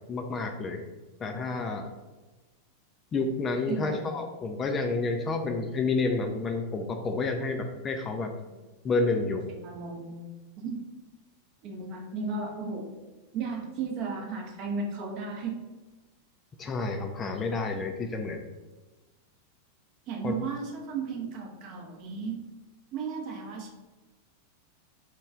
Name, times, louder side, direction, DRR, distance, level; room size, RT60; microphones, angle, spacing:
voice 1, 0.1-0.8 1.2-1.9 3.1-8.3 8.8-9.4 16.6-18.4 20.2-20.3, left 3 dB, 25° left, 4 dB, 0.3 m, -29 dB
voice 2, 3.7-4.1 9.5-10.2 10.6-10.8 11.6-12.9 13.3-15.5 20.1-22.4 22.9-23.7, right 4 dB, 40° right, 2 dB, 0.6 m, -34 dB
3.0 x 2.3 x 3.5 m, 1.2 s
figure-of-eight pair, 90°, 0 cm